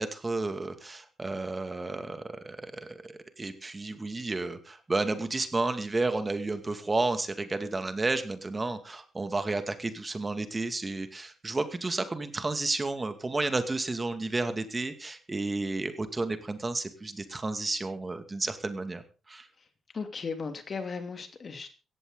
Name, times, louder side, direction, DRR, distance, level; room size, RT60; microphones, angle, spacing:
voice 1, 0.0-19.0 19.3-19.5, right 3 dB, 25° right, 9 dB, 2.4 m, -32 dB
voice 2, 19.9-21.7, left 5 dB, 45° left, 7 dB, 2.9 m, -36 dB
17.0 x 14.5 x 4.0 m, 0.34 s
cardioid pair, 70°, 0 cm